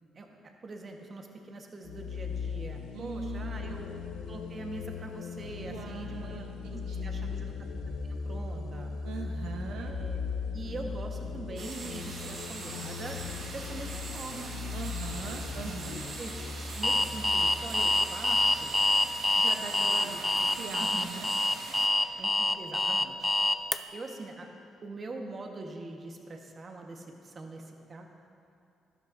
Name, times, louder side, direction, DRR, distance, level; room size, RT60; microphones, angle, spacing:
voice 1, 0.1-3.9 4.3-7.5 8.0-8.9 9.8-10.2 10.5-14.5 15.4-16.3 16.6-18.7 19.7-20.2 20.8-21.1 22.2-23.3 23.9-24.5 24.8-28.1, right 2 dB, 40° right, 2 dB, 1.2 m, -43 dB
sound 1, 1.8-19.3, left 5 dB, 90° left, 0.6 m, -38 dB
voice 2, 2.9-3.8 5.6-7.4 9.0-9.9 14.7-15.9 19.4-21.3, right 5 dB, 85° right, 2 dB, 0.7 m, -41 dB
sound 2, 11.6-21.9, right 3 dB, 70° right, 1.4 m, -42 dB
Alarm, 16.8-23.8, left 2 dB, 10° left, 0.4 m, -26 dB
12.0 x 12.0 x 2.6 m, 2.5 s
cardioid pair, 90°, 0 cm